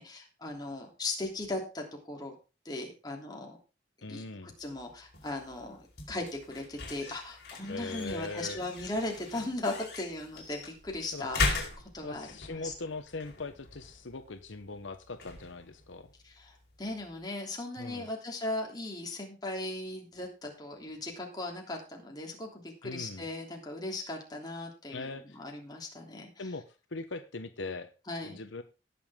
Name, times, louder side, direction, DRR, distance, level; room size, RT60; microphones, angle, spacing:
voice 1, 0.0-2.4 2.6-3.6 4.1-12.7 16.2-26.5 28.1-28.4, left 2 dB, 20° left, 0 dB, 3.1 m, -38 dB
voice 2, 4.0-4.5 7.7-8.6 11.1-11.3 12.0-16.1 17.8-18.1 22.8-23.3 24.9-25.4 26.4-26.6 26.9-27.9 28.2-28.6, left 3 dB, 75° left, 9 dB, 0.9 m, -40 dB
sound 1, 4.5-17.3, left 3 dB, 55° left, 4.7 m, -40 dB
18.0 x 7.0 x 3.7 m, 0.31 s
head